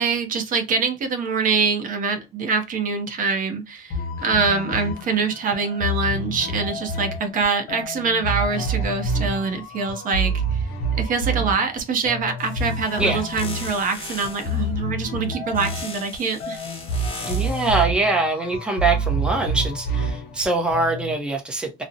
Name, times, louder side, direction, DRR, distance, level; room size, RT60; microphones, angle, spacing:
voice 1, 0.0-16.6, right 5 dB, 55° right, 0.6 m, -24 dB
sound 1, 3.9-21.2, right 2 dB, 65° left, 0.6 m, -28 dB
sound 2, 12.4-14.6 15.5-17.8, left 3 dB, 30° left, 0.9 m, -38 dB
voice 2, 17.3-21.8, right 3 dB, 5° right, 0.6 m, -23 dB
2.5 x 2.0 x 2.5 m
cardioid pair, 110°, 17 cm